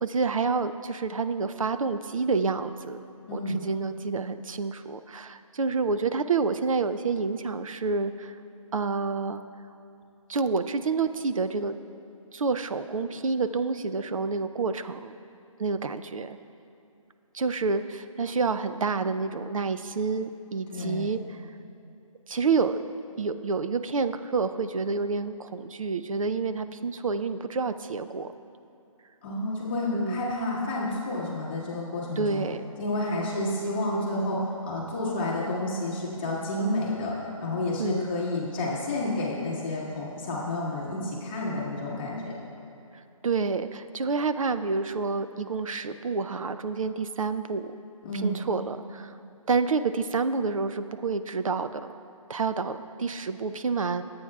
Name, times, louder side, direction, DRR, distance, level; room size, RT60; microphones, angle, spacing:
voice 1, 0.0-3.0 3.3-8.4 8.7-9.4 10.3-11.8 12.3-15.1 15.6-16.4 17.3-21.4 22.3-22.8 23.1-28.3 29.9-30.3 32.2-32.6 37.8-38.1 43.2-47.7 48.2-49.1 49.5-51.9 52.3-54.0, right 4 dB, 70° right, 11 dB, 0.6 m, -28 dB
voice 2, 3.3-3.6 20.7-21.1 29.2-32.5 32.8-42.3 48.0-48.4, left 1 dB, 20° left, -6 dB, 1.5 m, -30 dB
21.5 x 8.8 x 2.4 m, 2.8 s
hypercardioid pair, 175°, 18 cm